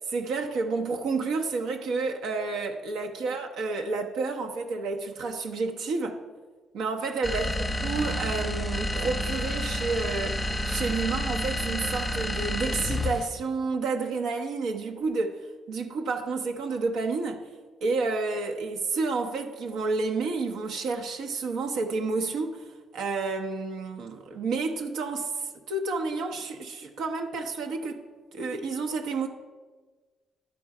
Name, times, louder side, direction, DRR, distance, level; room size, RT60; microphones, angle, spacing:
voice 1, 0.1-6.2 6.7-7.5 7.8-15.4 15.7-17.5 17.8-22.7 22.9-28.0 28.3-29.3, right 4 dB, 85° right, 0.7 m, -30 dB
sound 1, 7.2-13.4, left 1 dB, 20° left, 0.6 m, -30 dB
11.0 x 4.3 x 4.8 m
cardioid pair, 90°, 0 cm